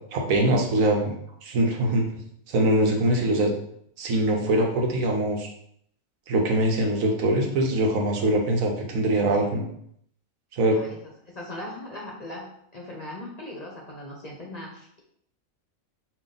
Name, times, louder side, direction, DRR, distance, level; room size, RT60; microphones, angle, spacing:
voice 1, 0.1-1.1 1.4-2.1 2.5-3.5 4.0-5.5 6.3-9.7 10.5-10.8, right 1 dB, 80° right, 1 dB, 1.3 m, -23 dB
voice 2, 10.7-12.5 12.7-15.0, left 1 dB, 40° left, -2 dB, 0.7 m, -39 dB
5.8 x 2.3 x 3.9 m, 0.69 s
omnidirectional pair, 1.4 m